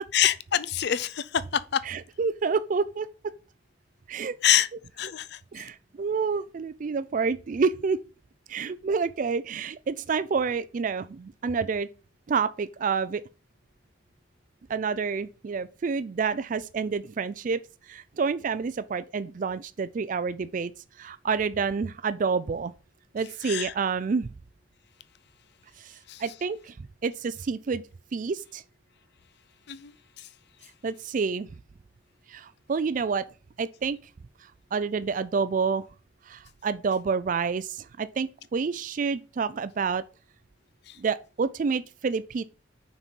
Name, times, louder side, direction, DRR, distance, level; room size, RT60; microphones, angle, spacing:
voice 1, 0.1-1.8 4.4-4.7 5.0-5.4 23.4-23.7 26.1-26.2 29.7-30.3 40.9-41.0, left 10 dB, 60° left, 0.5 m, -26 dB
voice 2, 1.9-3.1 4.1-4.3 5.5-8.0 8.5-11.9 12.3-13.2 14.7-17.6 17.9-20.7 21.0-22.7 23.1-24.3 25.8-26.7 27.0-27.8 28.1-28.6 30.8-31.5 32.3-33.2 33.6-34.0 34.7-35.8 36.3-40.0 41.0-42.4, right 5 dB, 45° right, 0.3 m, -28 dB
5.8 x 4.2 x 5.3 m
head